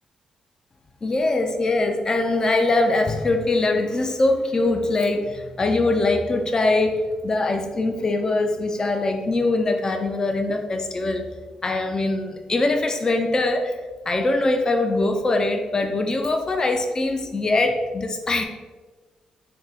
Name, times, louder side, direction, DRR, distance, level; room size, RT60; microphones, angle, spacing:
voice 1, 1.0-11.3 11.6-13.8 14.1-18.4, left 2 dB, 30° left, 5 dB, 0.4 m, -22 dB
3.5 x 2.1 x 4.0 m, 1.3 s
cardioid pair, 75°, 2 cm